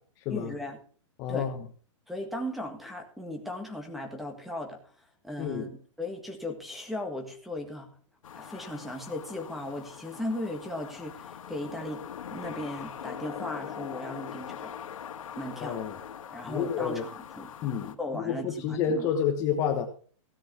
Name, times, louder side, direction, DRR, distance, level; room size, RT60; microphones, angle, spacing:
voice 1, 0.3-0.8 1.3-1.5 2.1-4.8 5.2-5.7 6.0-7.9 8.4-12.0 12.3-14.7 15.4-15.8 16.3-17.5 18.0-19.1, left 1 dB, ahead, 6 dB, 1.7 m, -37 dB
voice 2, 1.2-1.6 5.4-5.7 15.6-16.0 16.5-17.0 17.6-19.9, left 7 dB, 20° left, 4 dB, 1.1 m, -29 dB
sound 1, 8.2-18.0, left 8 dB, 90° left, 1.9 m, -42 dB
16.5 x 7.9 x 6.0 m, 0.42 s
hypercardioid pair, 175°, 17 cm